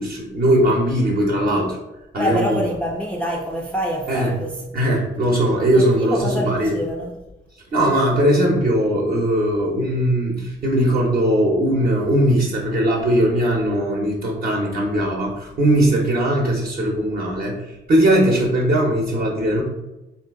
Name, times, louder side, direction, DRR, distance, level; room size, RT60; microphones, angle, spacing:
voice 1, 0.0-1.8 2.1-2.6 4.1-4.3 4.7-6.8 7.7-17.6 17.9-19.6, right 1 dB, 45° right, -2 dB, 0.7 m, -19 dB
voice 2, 2.1-4.8 5.7-7.1, equal, 5° left, -3 dB, 0.4 m, -26 dB
2.7 x 2.3 x 3.5 m, 0.99 s
cardioid pair, 90°, 20 cm